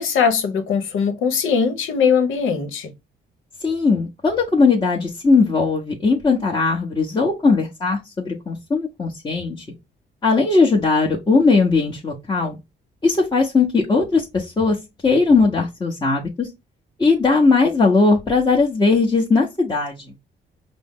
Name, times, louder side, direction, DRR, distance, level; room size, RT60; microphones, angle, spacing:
voice 1, 0.0-2.9, left 6 dB, 80° left, 1.0 m, -20 dB
voice 2, 3.6-9.6 10.2-12.6 13.0-14.8 15.0-16.5 17.0-20.0, left 4 dB, 20° left, 1.0 m, -18 dB
5.1 x 2.0 x 3.6 m
cardioid pair, 90°, 20 cm